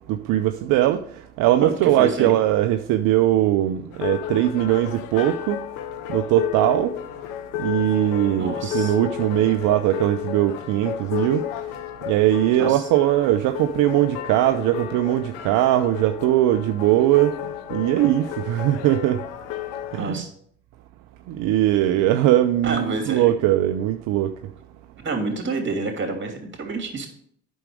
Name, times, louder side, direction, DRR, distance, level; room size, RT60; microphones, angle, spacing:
voice 1, 0.1-1.0 1.4-5.6 6.1-6.9 7.6-11.4 12.1-17.3 17.7-19.2 19.9-20.2 21.3-24.3, right 13 dB, 70° right, 0.6 m, -20 dB
voice 2, 1.6-2.3 8.3-9.0 12.6-12.9 20.0-20.3 22.6-23.3 25.0-27.1, right 3 dB, 35° right, 3.0 m, -28 dB
sound 1, 3.9-20.1, left 12 dB, 75° left, 0.7 m, -32 dB
8.9 x 6.3 x 4.8 m
hypercardioid pair, 60°, 33 cm